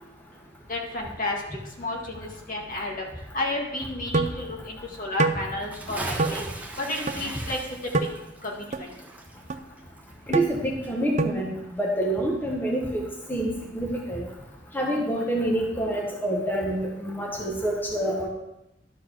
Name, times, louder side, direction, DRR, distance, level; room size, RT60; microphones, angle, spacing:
voice 1, 0.7-1.4 1.8-2.9 3.3-6.4 6.8-7.6 8.4-8.9, left 2 dB, 50° left, -1 dB, 1.8 m, -31 dB
sound 1, 4.1-4.4 5.2-5.4 6.2-6.3 7.1-7.2 7.9-8.1 8.7-8.8 9.5-9.6 10.3-10.5 11.2-11.4, right 3 dB, 40° right, 0.5 m, -24 dB
Bathtub (filling or washing) / Splash splatter, 5.6-10.6 10.8-10.9, right 2 dB, 10° right, 1.3 m, -38 dB
voice 2, 10.3-14.3 14.7-18.3, right 1 dB, 10° left, -2 dB, 1.2 m, -27 dB
12.0 x 4.7 x 5.9 m, 0.90 s
head